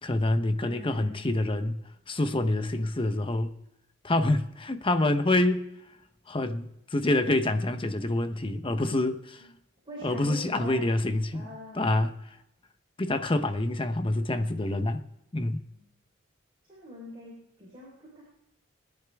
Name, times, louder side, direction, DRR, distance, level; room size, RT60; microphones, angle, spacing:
voice 1, 0.0-1.8 2.1-3.5 4.0-5.7 6.3-9.4 10.0-11.5 11.7-12.1 13.0-15.0 15.3-15.6, left 2 dB, 25° left, 0.9 m, -26 dB
voice 2, 0.6-1.2 9.4-9.5 9.9-10.9 11.3-12.0 15.7-15.8 16.7-18.2, left 1 dB, 25° right, 4.1 m, -43 dB
20.5 x 10.5 x 3.5 m
head